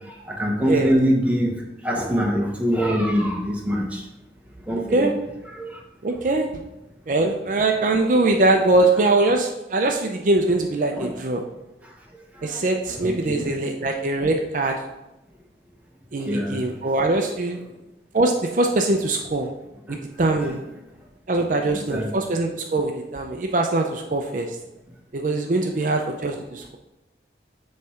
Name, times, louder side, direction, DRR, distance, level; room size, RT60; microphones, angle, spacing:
voice 1, 0.3-1.5 1.8-3.8 4.7-5.1 8.4-8.5 10.9-11.1 13.0-13.5 16.3-16.6 20.4-20.5 21.9-22.1, equal, 10° right, -1 dB, 1.0 m, -23 dB
voice 2, 6.0-6.5 7.1-11.5 12.4-14.8 16.1-17.6 18.1-19.5 19.9-20.6 21.3-24.6 25.1-26.8, right 2 dB, 45° right, 3 dB, 0.5 m, -22 dB
8.0 x 3.2 x 5.7 m, 0.97 s
head